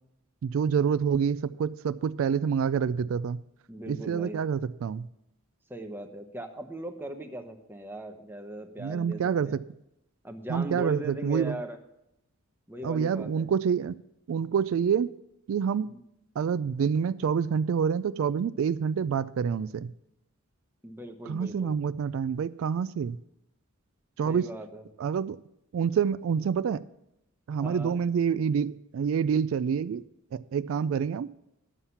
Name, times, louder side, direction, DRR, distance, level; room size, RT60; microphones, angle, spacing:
voice 1, 0.4-3.4 3.9-5.1 8.8-9.5 10.5-11.6 12.8-13.9 14.3-15.1 15.5-15.9 16.4-19.9 21.3-23.2 24.2-24.5 25.0-25.4 25.7-26.8 27.5-30.0 30.3-31.3, right 7 dB, 65° right, 15 dB, 0.3 m, -27 dB
voice 2, 3.7-4.4 5.7-9.6 10.2-11.8 12.7-13.5 15.9-16.0 20.8-21.8 24.2-24.9 27.6-28.0, right 1 dB, 10° right, 5 dB, 0.8 m, -39 dB
11.0 x 7.3 x 5.6 m, 0.84 s
head